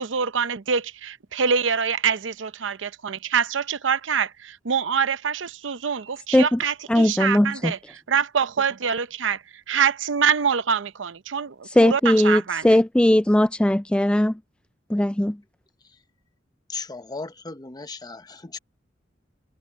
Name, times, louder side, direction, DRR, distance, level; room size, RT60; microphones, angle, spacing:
voice 1, 0.0-7.8 8.1-12.7, right 6 dB, 85° right, 0.7 m, -25 dB
voice 2, 6.9-7.7 11.7-14.3 14.9-15.4, left 1 dB, 5° left, 0.3 m, -19 dB
voice 3, 16.7-18.6, left 4 dB, 20° left, 0.9 m, -36 dB
head